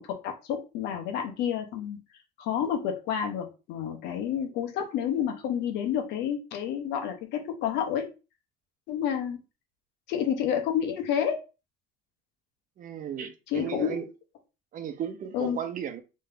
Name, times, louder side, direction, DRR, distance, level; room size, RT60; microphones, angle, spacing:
voice 1, 0.1-2.0 2.4-8.1 8.9-9.4 10.1-11.4 13.5-14.0 15.3-15.6, left 9 dB, 90° left, 1.1 m, -29 dB
voice 2, 12.8-14.1 14.7-16.0, right 8 dB, 55° right, 0.8 m, -35 dB
3.4 x 3.2 x 3.8 m
cardioid pair, 110°, 17 cm